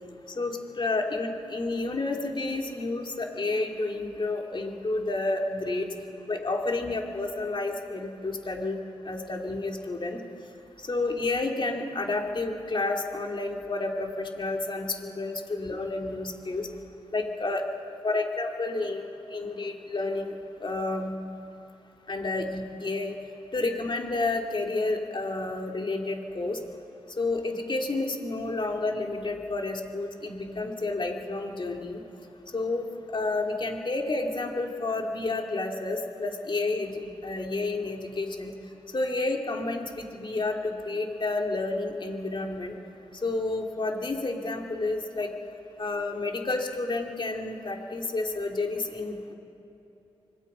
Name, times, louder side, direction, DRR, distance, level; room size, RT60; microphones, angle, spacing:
voice 1, 0.4-5.9 6.3-10.2 10.8-16.7 17.1-17.6 18.0-20.3 20.6-21.1 22.1-23.2 23.5-26.6 27.2-32.0 32.5-32.8 33.1-38.5 38.9-42.7 43.2-45.3 45.8-49.3, left 2 dB, 50° left, 2 dB, 2.8 m, -30 dB
25.5 x 19.5 x 5.6 m, 3.0 s
cardioid pair, 60°, 11 cm